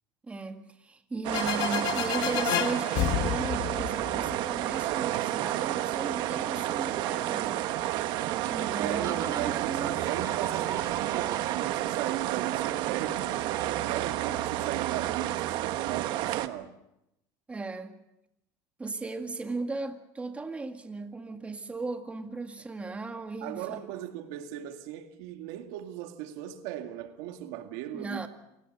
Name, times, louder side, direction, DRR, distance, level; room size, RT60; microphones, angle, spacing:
voice 1, 0.2-7.7 8.5-10.1 17.5-18.0 18.8-23.9 27.9-28.3, right 3 dB, 15° right, 1.9 m, -37 dB
sound 1, 1.2-16.5, right 14 dB, 65° right, 1.2 m, -30 dB
sound 2, 1.3-4.9, left 13 dB, 55° left, 1.2 m, -31 dB
sound 3, 8.8-14.1, right 8 dB, 45° right, 2.5 m, -41 dB
voice 2, 8.8-13.4 13.8-16.7 23.4-28.3, right 12 dB, 80° right, 2.1 m, -37 dB
27.5 x 18.0 x 6.6 m
supercardioid pair, 120°, 8 cm